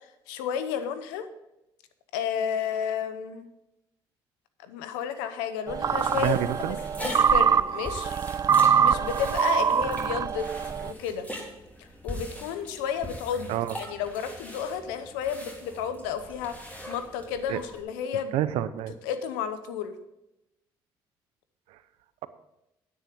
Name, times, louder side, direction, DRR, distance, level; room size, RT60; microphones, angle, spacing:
voice 1, 0.3-1.3 2.1-3.5 4.6-6.4 6.6-8.2 8.8-11.3 11.8-16.6 16.9-18.3 19.0-19.9, left 8 dB, 90° left, 10 dB, 0.8 m, -32 dB
sound 1, 5.7-17.8, equal, 15° left, 3.4 m, -41 dB
sound 2, 5.7-10.9, right 7 dB, 35° right, 0.3 m, -24 dB
voice 2, 6.1-6.8 13.5-13.8 17.5-17.6 18.3-18.9 21.7-21.8, right 12 dB, 80° right, 13 dB, 0.7 m, -28 dB
9.7 x 8.8 x 5.2 m, 0.90 s
hypercardioid pair, 55°, 10 cm